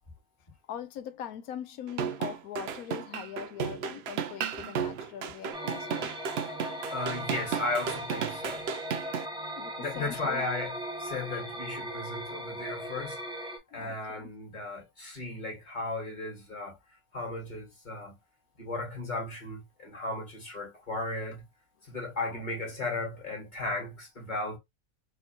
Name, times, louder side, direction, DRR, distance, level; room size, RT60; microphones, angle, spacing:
voice 1, 0.7-6.1 6.4-6.6 9.5-10.5 13.7-14.3 22.3-22.4, left 9 dB, 85° left, 1.1 m, -42 dB
sound 1, 1.9-9.3, right 7 dB, 65° right, 0.7 m, -34 dB
sound 2, 5.5-13.6, equal, 5° right, 0.5 m, -38 dB
voice 2, 6.9-8.7 9.8-13.2 13.7-16.8 17.1-18.2 18.6-21.4 21.9-24.6, left 2 dB, 35° left, 2.0 m, -35 dB
4.4 x 2.8 x 2.8 m
omnidirectional pair, 1.5 m